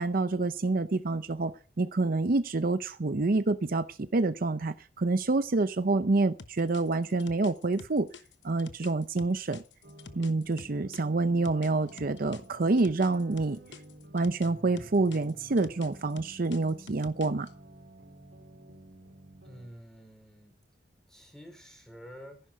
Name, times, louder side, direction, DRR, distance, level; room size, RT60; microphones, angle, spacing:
voice 1, 0.0-8.1 8.4-9.6 10.2-13.6 14.1-17.5, right 3 dB, 50° right, 11 dB, 0.7 m, -27 dB
sound 1, 6.4-11.0 11.4-14.5 14.8-17.5, left 4 dB, 75° left, 1.2 m, -48 dB
sound 2, 9.8-19.7, right 1 dB, 70° right, 3.6 m, -51 dB
voice 2, 19.4-20.6 21.1-22.4, equal, 5° left, 4 dB, 4.8 m, -49 dB
15.0 x 11.0 x 5.6 m, 0.38 s
head